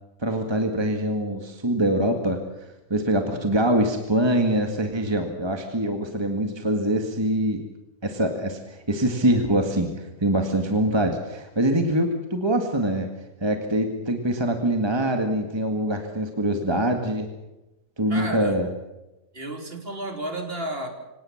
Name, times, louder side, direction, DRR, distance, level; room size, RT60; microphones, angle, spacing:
voice 1, 0.2-2.4 2.9-7.6 8.0-13.1 13.4-17.3 18.0-18.7, right 1 dB, 15° right, 5 dB, 1.9 m, -24 dB
voice 2, 18.1-18.6 19.3-20.9, right 1 dB, 40° right, 4 dB, 3.4 m, -32 dB
25.5 x 18.0 x 7.3 m, 0.97 s
omnidirectional pair, 1.5 m